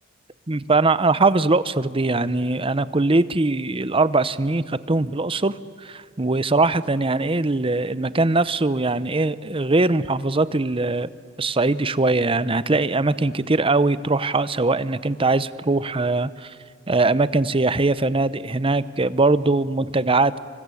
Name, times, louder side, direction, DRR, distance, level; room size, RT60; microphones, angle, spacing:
voice 1, 0.5-5.6 5.8-11.1 11.4-16.5 16.9-20.4, right 3 dB, 30° right, 16 dB, 0.8 m, -21 dB
27.5 x 25.0 x 8.5 m, 2.2 s
head